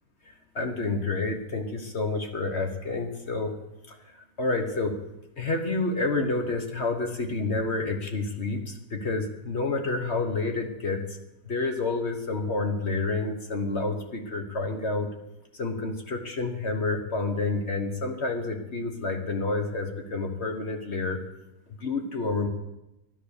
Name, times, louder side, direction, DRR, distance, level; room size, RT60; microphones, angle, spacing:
voice 1, 0.5-3.5 3.9-4.0 4.4-5.0 5.4-11.0 11.5-15.1 15.6-21.2 21.8-22.5, left 3 dB, 40° left, 5 dB, 1.4 m, -29 dB
13.0 x 9.9 x 6.7 m, 0.93 s
omnidirectional pair, 2.0 m